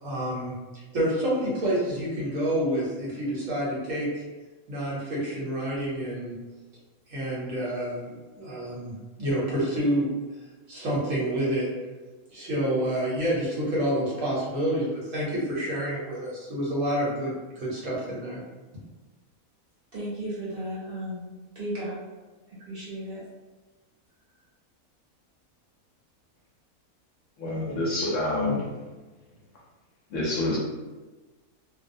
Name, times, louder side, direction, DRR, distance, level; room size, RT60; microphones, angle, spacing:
voice 1, 0.0-4.2 4.7-6.4 7.1-10.1 10.7-11.7 12.3-18.4, right 1 dB, 65° right, -6 dB, 1.2 m, -28 dB
voice 2, 19.9-22.0 22.7-23.2, right 1 dB, 45° right, -8 dB, 1.0 m, -34 dB
voice 3, 27.4-28.7 30.1-30.6, left 2 dB, 70° left, -4 dB, 0.9 m, -27 dB
2.6 x 2.1 x 2.5 m, 1.3 s
omnidirectional pair, 1.5 m